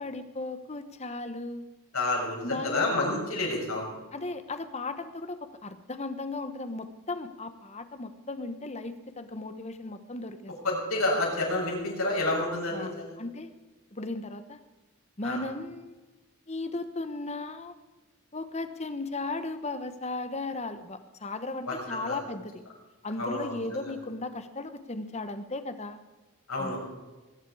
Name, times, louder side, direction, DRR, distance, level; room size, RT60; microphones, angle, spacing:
voice 1, 0.0-1.7 2.4-3.2 4.1-10.5 12.7-13.5 13.9-14.6 15.2-16.0 16.5-17.8 18.3-22.6 23.0-26.0 26.6-26.7, left 2 dB, 30° left, 10 dB, 1.1 m, -36 dB
voice 2, 1.9-3.9 10.6-13.1 15.2-15.4 21.7-22.2 23.2-23.9 26.5-26.8, left 2 dB, 75° left, -2 dB, 6.8 m, -29 dB
21.0 x 11.0 x 4.9 m, 1.2 s
head